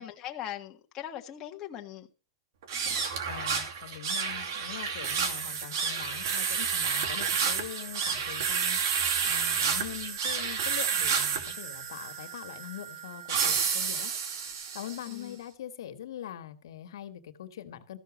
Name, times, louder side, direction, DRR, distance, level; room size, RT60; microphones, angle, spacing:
voice 1, 0.0-2.1 15.1-15.4, left 11 dB, 25° left, 1.6 m, -40 dB
sound 1, 2.6-15.1, right 6 dB, 70° right, 2.5 m, -30 dB
voice 2, 3.2-18.0, left 11 dB, 80° left, 1.7 m, -43 dB
14.5 x 6.1 x 6.5 m
supercardioid pair, 155°, 2 cm